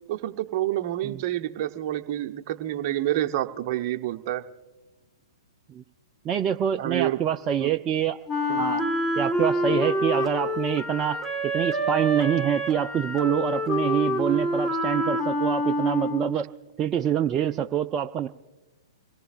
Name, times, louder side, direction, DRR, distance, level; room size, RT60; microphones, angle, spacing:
voice 1, 0.1-4.4 6.8-7.2 7.6-7.8 8.5-8.6 9.7-9.9, right 13 dB, 40° right, 8 dB, 0.8 m, -28 dB
voice 2, 6.2-8.2 8.6-8.8 9.2-16.5 16.8-18.3, right 9 dB, 25° right, 6 dB, 0.4 m, -26 dB
Wind instrument woodwind instrument, 8.3-16.5, equal, 5° left, 1.5 m, -27 dB
26.5 x 18.0 x 2.5 m, 1.2 s
figure-of-eight pair, 115°, 3 cm